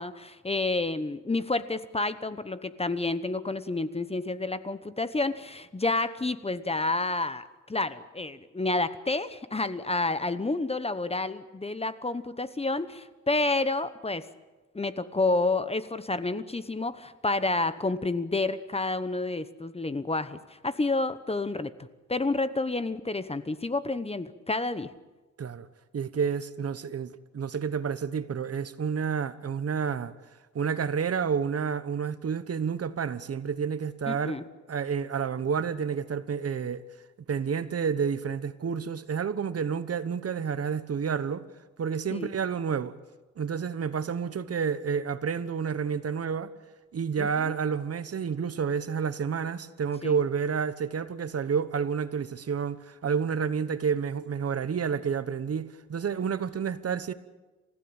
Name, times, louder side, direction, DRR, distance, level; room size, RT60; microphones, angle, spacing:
voice 1, 0.0-14.3 14.7-24.9 34.1-34.4 42.1-42.3 47.2-47.5 50.0-50.2, left 2 dB, 20° left, 1.0 m, -29 dB
voice 2, 25.9-30.1 30.5-34.4 34.7-36.8 37.3-41.4 41.8-42.9 43.4-46.5 46.9-57.1, right 6 dB, 55° right, 1.2 m, -30 dB
28.5 x 15.5 x 8.9 m
cardioid pair, 100°, 30 cm